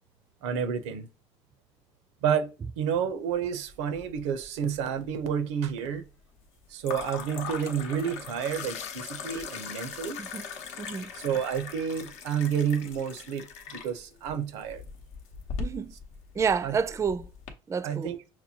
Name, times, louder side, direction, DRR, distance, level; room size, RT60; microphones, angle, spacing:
voice 1, 0.4-1.1 2.2-2.5 2.8-6.0 6.7-10.2 11.1-13.5 13.7-14.8 16.6-16.7 17.8-18.2, right 8 dB, 90° right, 0.6 m, -30 dB
sound 1, 3.7-4.4 4.7-5.4 6.8-17.5, left 5 dB, 85° left, 0.8 m, -40 dB
sound 2, 8.3-13.8, left 9 dB, 50° left, 0.5 m, -47 dB
voice 2, 10.8-11.1 15.6-15.9 16.4-17.3 17.7-18.1, right 6 dB, 20° right, 0.3 m, -29 dB
5.9 x 2.2 x 2.7 m
supercardioid pair, 75°, 14 cm